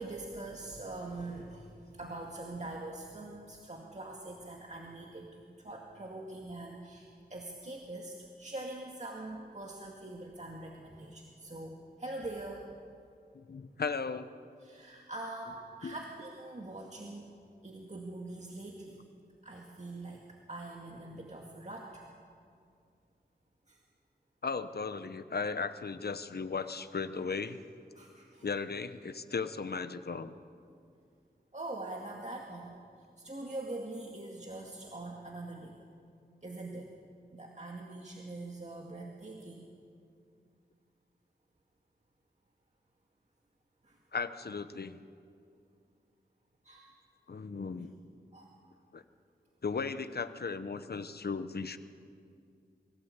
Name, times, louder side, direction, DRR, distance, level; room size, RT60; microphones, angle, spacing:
voice 1, 0.0-12.7 14.6-17.3 17.6-19.0 19.4-20.2 20.5-22.0 23.7-23.8 28.0-28.5 31.5-32.7 33.2-35.9 36.4-36.9 37.3-39.7 43.8-44.0 46.6-46.9 48.3-48.5, right 2 dB, 40° right, -1 dB, 2.1 m, -43 dB
voice 2, 13.3-14.3 15.8-16.0 24.4-27.6 28.4-30.3 44.1-45.0 47.3-47.9 48.9-49.0 49.6-51.8, left 5 dB, 65° left, 11 dB, 1.0 m, -36 dB
24.0 x 16.5 x 8.1 m, 2.4 s
wide cardioid pair, 80°, 18 cm